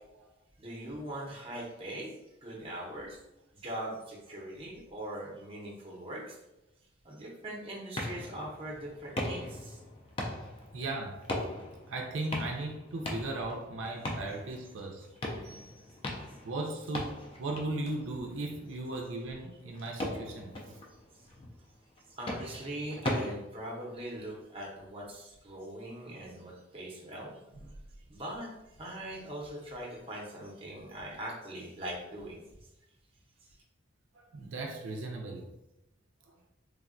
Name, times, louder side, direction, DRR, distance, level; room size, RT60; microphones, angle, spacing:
voice 1, 0.6-2.1 2.4-3.2 3.5-6.4 7.0-9.8 15.4-16.0 22.1-27.4 28.1-28.5 28.8-32.7 33.5-33.6, right 1 dB, 30° right, -3 dB, 0.6 m, -41 dB
sound 1, 7.9-23.3, left 1 dB, 25° left, 0.3 m, -39 dB
voice 2, 10.7-11.2 11.9-15.1 16.4-20.5 34.1-35.4, right 2 dB, 75° right, 1 dB, 0.4 m, -37 dB
3.3 x 2.1 x 2.4 m, 0.92 s
head